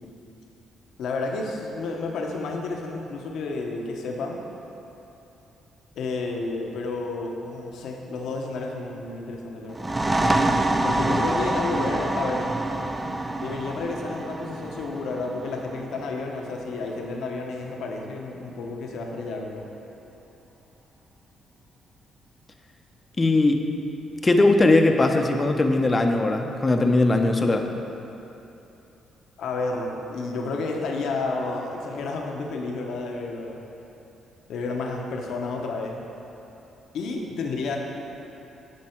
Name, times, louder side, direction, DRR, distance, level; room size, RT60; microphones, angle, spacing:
voice 1, 1.0-4.4 6.0-9.8 10.8-12.5 13.4-19.7 29.4-33.6 34.5-36.0 36.9-37.8, left 3 dB, 75° left, 1 dB, 0.9 m, -31 dB
sound 1, 9.7-17.1, right 2 dB, 15° right, 0.4 m, -26 dB
voice 2, 23.2-23.6 24.2-27.7, left 2 dB, 25° left, 4 dB, 0.6 m, -19 dB
9.6 x 4.6 x 4.5 m, 2.9 s
cardioid pair, 90°, 0 cm